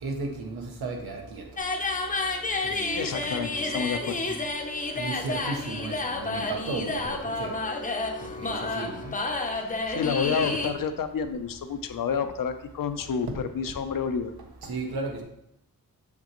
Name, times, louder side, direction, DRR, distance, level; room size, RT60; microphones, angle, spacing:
voice 1, 0.0-1.4 2.6-3.8 4.3-4.4 4.9-7.5 8.2-9.1 10.2-10.8 13.6-13.7 14.6-15.2, right 3 dB, 80° right, 2 dB, 1.4 m, -35 dB
sound 1, 1.6-10.7, left 3 dB, 20° left, 0.7 m, -30 dB
voice 2, 2.9-4.2 9.9-14.3, left 6 dB, 60° left, 9 dB, 0.7 m, -29 dB
7.3 x 6.8 x 3.1 m, 0.77 s
wide cardioid pair, 160°, 37 cm